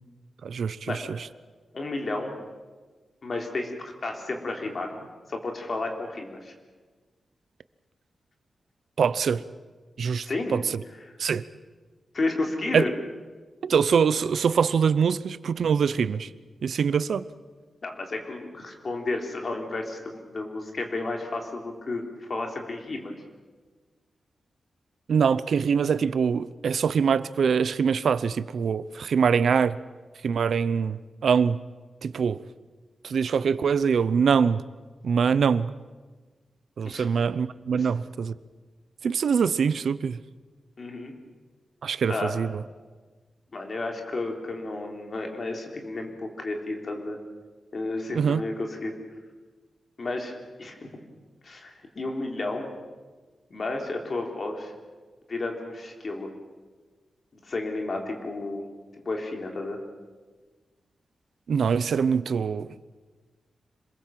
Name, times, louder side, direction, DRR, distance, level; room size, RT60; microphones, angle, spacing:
voice 1, 0.4-1.0 9.0-9.4 10.0-10.8 11.2-11.4 12.7-12.8 13.6-16.3 16.6-17.2 25.1-29.8 30.2-31.6 32.0-32.4 33.0-34.6 35.0-35.7 36.8-38.3 39.0-40.2 41.8-42.6 48.1-48.4 61.5-62.7, right 6 dB, 70° right, 0.7 m, -24 dB
voice 2, 1.7-2.3 3.2-4.9 5.3-6.5 10.2-10.6 11.1-11.2 12.1-12.9 17.8-23.1 36.8-37.1 37.7-37.9 40.8-41.1 42.1-42.3 43.5-47.2 47.7-49.0 50.0-50.3 50.6-50.9 51.4-52.7 53.5-54.7 55.3-56.3 57.3-58.7 58.9-59.8, left 2 dB, 40° left, 3.5 m, -32 dB
26.5 x 21.0 x 7.6 m
wide cardioid pair, 175°, 0 cm